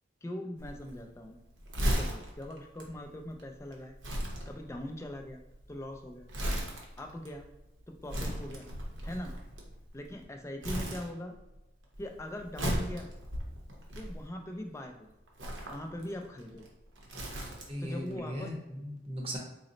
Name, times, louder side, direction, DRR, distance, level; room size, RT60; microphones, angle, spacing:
voice 1, 0.2-1.4 1.9-3.9 4.4-5.4 5.7-6.3 7.0-7.5 7.9-8.7 9.0-9.4 9.9-11.4 12.0-13.1 13.9-15.1 15.7-16.6 17.8-18.5, left 1 dB, 15° left, 4 dB, 0.3 m, -41 dB
Crumpling crinkling, 0.6-10.2 10.6-11.6 11.8-14.6 15.3-17.9 18.2-18.3, equal, 80° right, 0.8 m, -36 dB
voice 2, 17.7-19.4, equal, 30° right, 0 dB, 0.7 m, -38 dB
4.0 x 2.0 x 3.8 m, 0.97 s
head